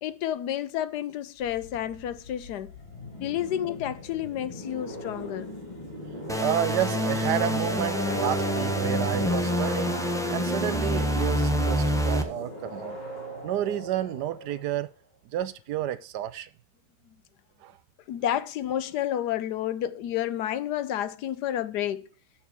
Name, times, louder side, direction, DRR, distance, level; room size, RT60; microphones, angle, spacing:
voice 1, 0.0-2.7 3.2-5.5 18.1-22.1, left 11 dB, 75° left, 1.2 m, -30 dB
sound 1, 1.4-14.8, equal, 25° left, 2.8 m, -37 dB
sound 2, 6.3-12.2, equal, 5° left, 0.3 m, -27 dB
voice 2, 6.4-10.0 10.3-13.0 13.4-14.9 15.3-16.5 17.6-17.8, right 12 dB, 75° right, 1.2 m, -30 dB
7.0 x 4.6 x 6.7 m
omnidirectional pair, 1.9 m